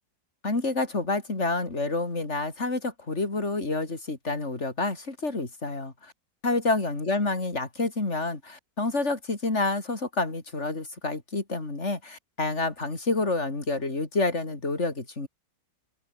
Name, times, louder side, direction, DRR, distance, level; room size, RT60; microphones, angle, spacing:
voice 1, 0.4-6.1 6.4-15.3, left 3 dB, 35° left, 4.2 m, -28 dB
omnidirectional pair, 2.0 m